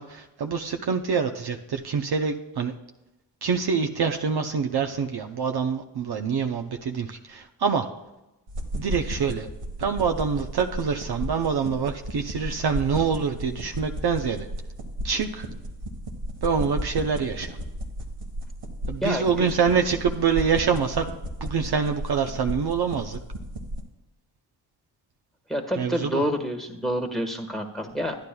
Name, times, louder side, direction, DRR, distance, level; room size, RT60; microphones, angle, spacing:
voice 1, 0.0-2.7 3.4-7.9 8.7-9.5 9.8-14.5 15.0-15.5 16.4-17.6 18.9-21.1 21.4-23.2 25.8-26.2, right 6 dB, 55° right, 5 dB, 0.7 m, -25 dB
sound 1, 8.5-23.8, equal, 80° right, 1.5 m, -34 dB
voice 2, 19.0-19.5 25.5-28.2, equal, ahead, 3 dB, 1.6 m, -28 dB
11.5 x 9.7 x 2.3 m, 0.97 s
supercardioid pair, 45°, 47 cm